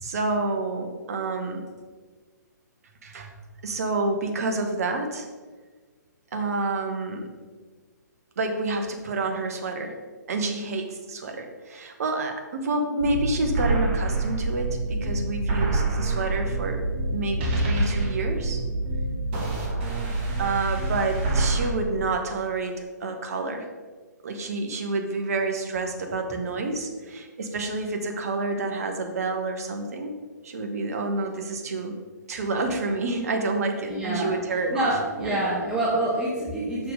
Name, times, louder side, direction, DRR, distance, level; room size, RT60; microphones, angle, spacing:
voice 1, 0.0-1.7 3.0-3.3 3.6-5.3 6.3-7.3 8.4-9.9 10.3-16.8 17.1-18.6 20.4-23.6 24.2-30.1 30.4-32.0 32.3-34.9 35.2-35.4, right 3 dB, 55° right, 5 dB, 1.1 m, -28 dB
sound 1, 13.0-21.7, right 2 dB, 35° right, 1.5 m, -26 dB
voice 2, 33.9-34.4 34.7-36.9, right 1 dB, 5° right, -7 dB, 1.1 m, -26 dB
6.1 x 4.7 x 5.0 m, 1.4 s
figure-of-eight pair, 130°, 10 cm